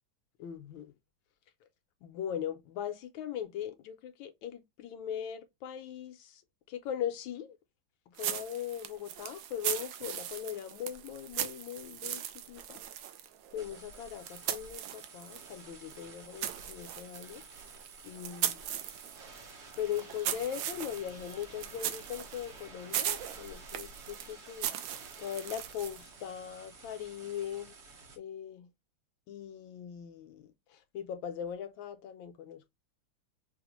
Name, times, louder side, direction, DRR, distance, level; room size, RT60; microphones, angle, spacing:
voice 1, 0.4-0.9 2.0-6.4 6.7-7.6 8.1-12.2 12.5-12.8 13.5-17.4 18.0-18.6 19.4-19.5 19.8-24.7 25.2-27.8 28.2-28.7 29.3-32.7, left 9 dB, 75° left, 1.3 m, -40 dB
sound 1, 8.2-15.5 15.9-26.1, right 10 dB, 75° right, 1.3 m, -39 dB
sound 2, 13.6-28.2, right 4 dB, 50° right, 0.8 m, -52 dB
5.4 x 2.1 x 3.0 m
omnidirectional pair, 2.2 m